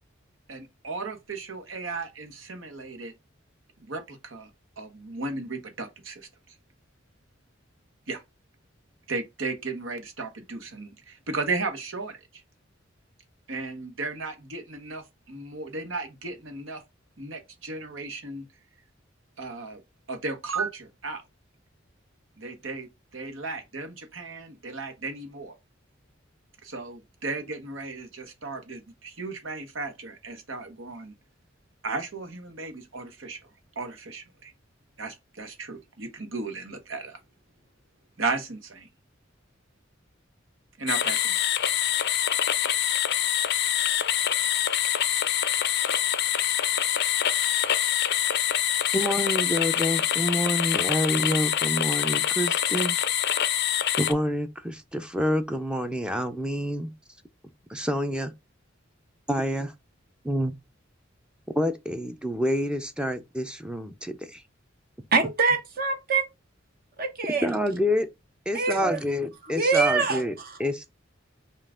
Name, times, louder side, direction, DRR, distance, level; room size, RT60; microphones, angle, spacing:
voice 1, 0.5-3.1 3.8-4.5 4.8-6.5 8.1-8.2 9.1-12.4 13.5-16.8 17.2-18.5 19.4-19.8 20.1-21.2 22.4-25.6 26.6-31.1 31.8-33.4 33.7-34.5 35.0-37.2 38.2-38.9 40.8-41.5, right 3 dB, 75° right, 1.2 m, -35 dB
sound 1, 40.9-54.1, left 11 dB, 55° left, 0.5 m, -25 dB
voice 2, 48.9-53.0 54.0-56.9 57.7-58.3 59.3-59.7 60.2-60.5 61.6-64.4 67.4-68.1 68.5-70.3 70.6-70.8, equal, 5° right, 0.5 m, -27 dB
voice 3, 65.1-66.2 67.0-67.5 68.5-69.0 69.4-70.6, right 4 dB, 50° right, 1.0 m, -25 dB
5.5 x 2.4 x 3.7 m
head